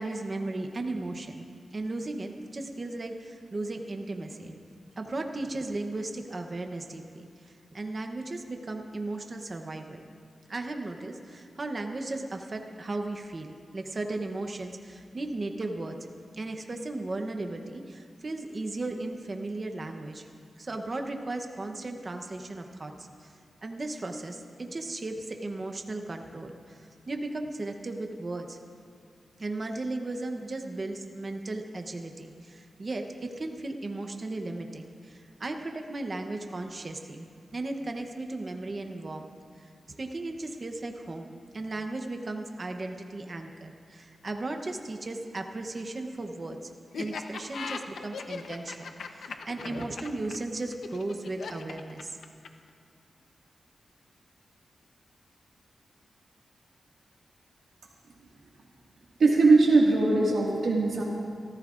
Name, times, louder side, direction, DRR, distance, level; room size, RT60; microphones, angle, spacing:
voice 1, 0.0-1.4 1.7-4.6 5.0-10.1 10.5-16.0 16.3-20.3 20.6-23.3 23.6-28.6 29.4-39.3 39.6-46.7 47.0-52.2, right 2 dB, 30° right, 4 dB, 0.8 m, -36 dB
Laughter, 46.9-52.7, left 5 dB, 85° left, 0.8 m, -38 dB
voice 2, 59.2-61.0, right 3 dB, 75° right, -4 dB, 1.8 m, -20 dB
27.0 x 14.0 x 2.5 m, 2.3 s
wide cardioid pair, 175°, 0 cm